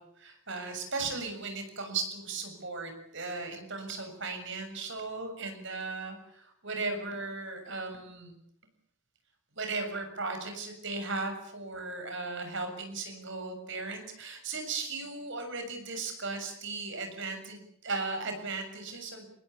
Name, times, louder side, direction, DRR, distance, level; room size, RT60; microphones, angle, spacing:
voice 1, 0.0-8.3 9.6-19.3, right 3 dB, 60° right, 6 dB, 7.2 m, -37 dB
27.5 x 20.5 x 8.6 m, 0.73 s
head